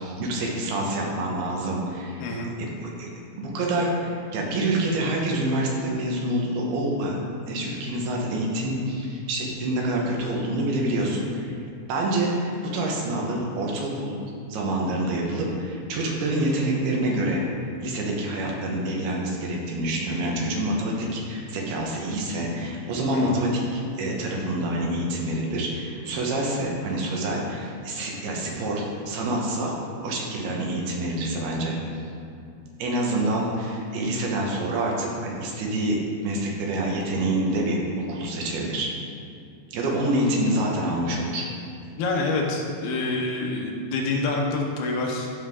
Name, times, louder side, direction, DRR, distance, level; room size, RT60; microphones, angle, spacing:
voice 1, 0.0-2.2 2.6-7.2 7.5-11.5 11.9-14.2 14.5-17.4 17.8-29.7 30.0-31.8 32.8-38.9 39.7-41.5, right 1 dB, 85° right, -2 dB, 3.3 m, -27 dB
voice 2, 2.2-2.5 23.1-23.3 42.0-45.3, left 3 dB, 80° left, -1 dB, 3.0 m, -27 dB
13.5 x 5.8 x 3.7 m, 2.4 s
omnidirectional pair, 4.5 m